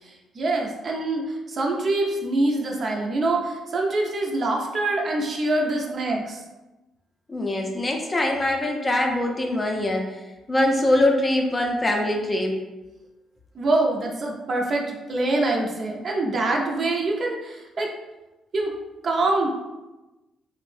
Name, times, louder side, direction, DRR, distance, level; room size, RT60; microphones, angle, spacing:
voice 1, 0.0-6.4 13.5-17.9 18.5-18.7 19.0-19.5, right 2 dB, 45° right, 0 dB, 0.5 m, -25 dB
voice 2, 7.3-10.2 10.5-12.6, left 1 dB, 25° left, 1 dB, 0.4 m, -23 dB
2.5 x 2.0 x 3.1 m, 1.1 s
cardioid pair, 90°, 0 cm